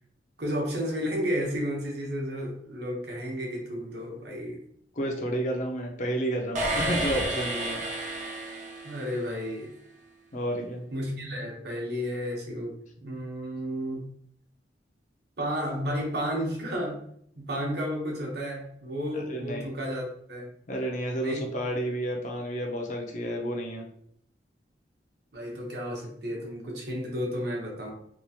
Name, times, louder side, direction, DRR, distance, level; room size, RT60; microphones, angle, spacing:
voice 1, 0.4-4.6 8.8-9.7 10.9-12.8 13.0-14.1 15.4-17.0 17.4-20.5 21.2-21.5 25.3-27.9, equal, 60° right, -1 dB, 0.9 m, -32 dB
voice 2, 5.0-7.8 10.3-10.8 19.3-19.7 20.7-23.8, right 1 dB, 45° left, 1 dB, 0.5 m, -31 dB
sound 1, 6.5-9.4, right 1 dB, 45° right, 0.5 m, -31 dB
2.9 x 2.3 x 2.7 m, 0.67 s
head